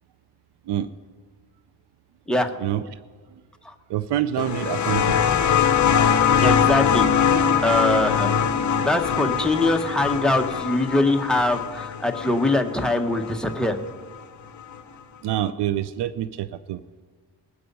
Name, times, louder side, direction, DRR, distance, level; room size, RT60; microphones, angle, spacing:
voice 1, 3.9-5.2 15.2-16.8, right 12 dB, 75° right, 14 dB, 0.5 m, -26 dB
sound 1, 4.4-13.6 14.8-14.9, left 7 dB, 45° left, 0.7 m, -22 dB
voice 2, 6.4-7.3 7.6-8.3 8.7-13.8, left 1 dB, ahead, 4 dB, 0.9 m, -23 dB
20.0 x 7.7 x 5.4 m, 1.5 s
wide cardioid pair, 120°, 41 cm